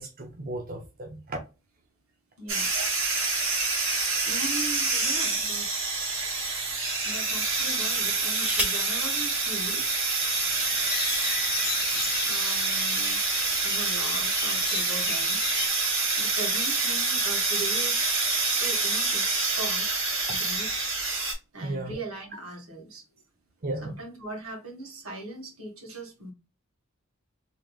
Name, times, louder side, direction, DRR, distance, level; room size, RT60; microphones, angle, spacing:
voice 1, 0.0-1.4 2.7-2.8 21.6-22.0 23.6-24.0, right 2 dB, 40° right, 0.6 m, -35 dB
voice 2, 2.4-2.7 4.2-5.7 7.0-9.9 12.2-13.2 13.6-15.4 15.7-18.2 18.6-20.7 21.5-23.1 23.8-26.3, right 2 dB, 80° right, 1.8 m, -40 dB
sound 1, 2.5-21.3, right 3 dB, 65° right, 1.8 m, -27 dB
sound 2, 4.2-5.4 6.1-6.3 7.9-8.9 10.1-10.2 10.5-10.9, equal, 5° right, 0.9 m, -35 dB
sound 3, 10.2-15.7, left 10 dB, 45° left, 0.4 m, -36 dB
3.5 x 3.3 x 2.4 m
head